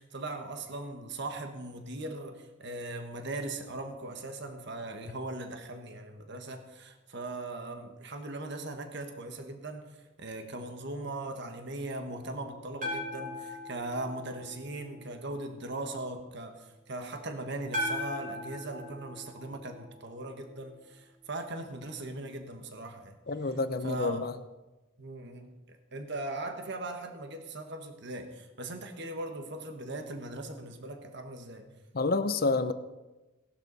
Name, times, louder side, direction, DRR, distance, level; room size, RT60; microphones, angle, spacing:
voice 1, 0.0-23.2 23.8-24.2 25.0-31.7, right 2 dB, 60° right, 5 dB, 1.4 m, -39 dB
sound 1, 12.8-15.0 17.7-20.1, left 1 dB, 40° right, 4.6 m, -38 dB
voice 2, 23.3-24.3 31.9-32.7, left 3 dB, 45° left, 11 dB, 0.7 m, -28 dB
18.0 x 12.0 x 4.1 m, 1.1 s
head